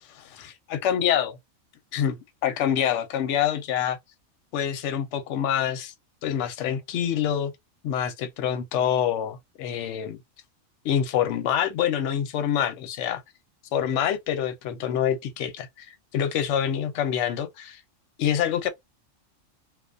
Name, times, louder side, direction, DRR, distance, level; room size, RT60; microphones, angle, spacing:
voice 1, 0.1-1.4 1.9-4.0 4.5-5.9 6.2-7.5 7.8-10.2 10.8-13.2 13.7-17.8 18.2-18.7, left 9 dB, 65° left, 0.8 m, -26 dB
2.3 x 2.2 x 2.5 m
omnidirectional pair, 1.4 m